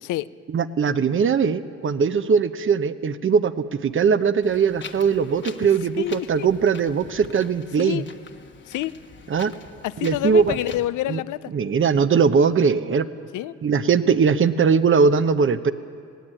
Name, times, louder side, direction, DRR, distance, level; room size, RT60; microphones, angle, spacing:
voice 1, 0.5-8.1 9.3-9.5 10.0-10.6 11.1-11.2 11.5-13.1 13.6-15.7, right 6 dB, 40° right, 12 dB, 1.0 m, -20 dB
Wind, 4.4-10.8, left 5 dB, 40° left, 1.3 m, -43 dB
voice 2, 6.0-6.5 7.8-8.0 8.7-8.9 9.8-11.5 13.3-13.5, left 14 dB, 85° left, 16 dB, 0.6 m, -27 dB
20.0 x 17.0 x 9.0 m, 2.4 s
cardioid pair, 90°, 30 cm